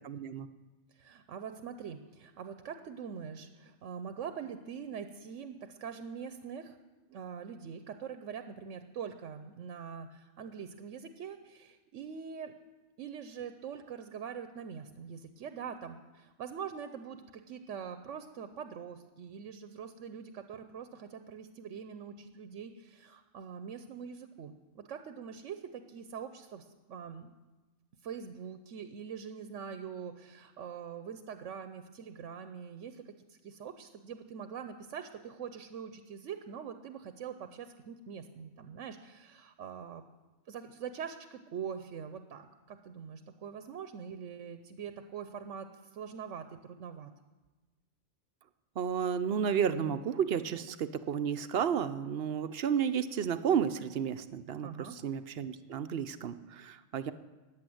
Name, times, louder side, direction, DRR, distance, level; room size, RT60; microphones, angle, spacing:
voice 1, 0.0-0.5 48.8-57.1, right 7 dB, 60° right, 12 dB, 0.8 m, -32 dB
voice 2, 0.9-6.8 7.1-12.5 13.0-27.3 28.0-40.0 40.5-47.1 54.6-55.0, right 7 dB, 90° right, 9 dB, 1.1 m, -43 dB
14.5 x 9.5 x 7.8 m, 1.2 s
omnidirectional pair, 1.2 m